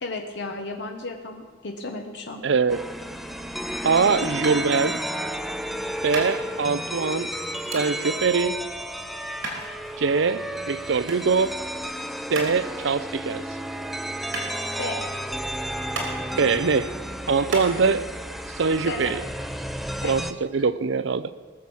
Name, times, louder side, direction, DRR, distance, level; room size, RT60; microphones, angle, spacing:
voice 1, 0.0-2.4 14.8-15.0 18.9-19.1 20.0-20.2, left 2 dB, 65° left, 3 dB, 1.0 m, -33 dB
voice 2, 2.4-2.8 3.8-5.0 6.0-7.3 7.7-8.6 10.0-11.6 12.3-13.4 16.4-16.9 17.3-18.0 18.6-19.2 20.0-21.3, right 5 dB, 70° right, 15 dB, 0.6 m, -23 dB
sound 1, 2.7-20.3, equal, ahead, 0.5 m, -32 dB
sound 2, 4.4-17.7, right 2 dB, 90° right, 3.2 m, -37 dB
20.0 x 7.1 x 6.2 m, 1.5 s
head